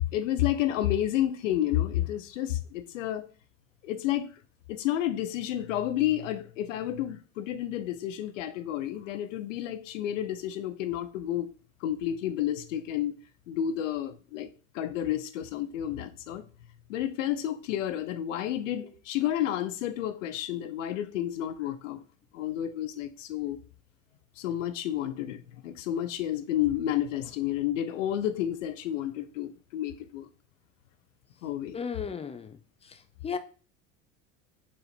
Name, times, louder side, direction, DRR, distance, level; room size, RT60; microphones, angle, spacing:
voice 1, 0.0-3.3 3.8-4.3 4.7-11.5 11.8-13.2 13.5-14.5 14.7-16.4 16.9-22.0 22.3-23.6 24.4-30.3 31.4-31.8, left 12 dB, 85° left, 0.6 m, -30 dB
voice 2, 31.7-32.6 32.8-33.4, left 6 dB, 15° left, 0.4 m, -35 dB
4.2 x 2.5 x 4.2 m
hypercardioid pair, 85°, 37 cm